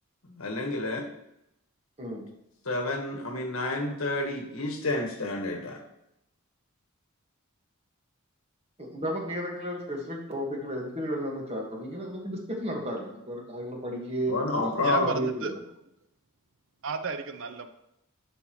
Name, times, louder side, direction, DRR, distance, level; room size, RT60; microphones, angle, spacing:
voice 1, 0.3-1.1 2.6-5.8 14.3-15.1, left 2 dB, 70° left, 2 dB, 1.4 m, -29 dB
voice 2, 8.8-15.5, equal, 30° right, 0 dB, 1.6 m, -33 dB
voice 3, 14.8-15.5 16.8-17.7, right 4 dB, 60° right, 10 dB, 0.5 m, -32 dB
10.5 x 5.6 x 3.1 m, 0.83 s
head